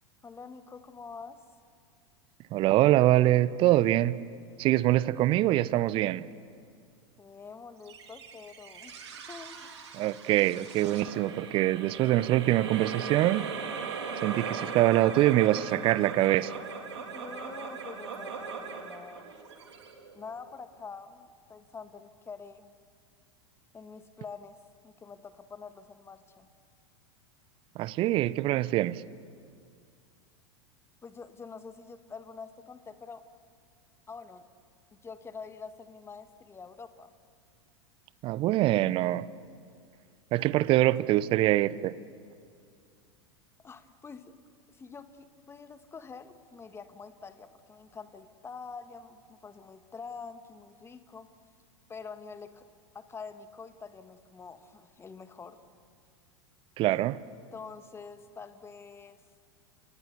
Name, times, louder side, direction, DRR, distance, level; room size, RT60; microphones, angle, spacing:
voice 1, 0.2-1.4 7.2-8.9 9.3-9.7 10.0-10.1 16.9-19.3 20.1-22.7 23.7-24.5 24.8-26.5 31.0-33.2 34.1-34.5 34.9-37.1 40.4-40.9 43.6-44.3 44.7-51.3 51.9-52.7 52.9-55.6 56.9-57.1 57.5-59.2, left 5 dB, 15° left, 10 dB, 1.7 m, -46 dB
voice 2, 2.5-4.2 4.6-6.2 10.0-13.5 14.2-16.6 27.8-29.0 38.2-39.3 40.3-41.9 56.8-57.2, right 15 dB, 35° right, 19 dB, 0.8 m, -24 dB
sound 1, 7.9-20.5, right 5 dB, 65° right, 3.6 m, -39 dB
30.0 x 28.5 x 7.0 m, 2.2 s
figure-of-eight pair, 90°, 16 cm